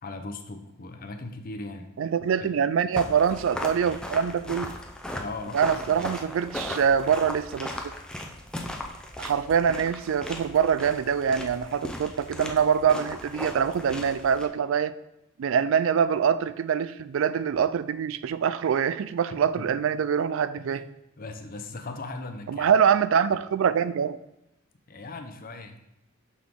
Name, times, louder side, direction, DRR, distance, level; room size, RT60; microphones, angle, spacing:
voice 1, 0.0-1.9 2.4-2.5 5.1-6.1 19.6-19.7 20.7-22.7 24.9-25.8, left 2 dB, 45° left, 6 dB, 0.7 m, -39 dB
voice 2, 2.0-4.7 5.5-7.9 9.2-14.9 15.4-20.8 22.5-24.2, right 7 dB, 60° right, 14 dB, 0.3 m, -24 dB
sound 1, 2.9-14.5, left 1 dB, 5° left, 0.6 m, -37 dB
6.3 x 5.9 x 3.6 m, 0.87 s
head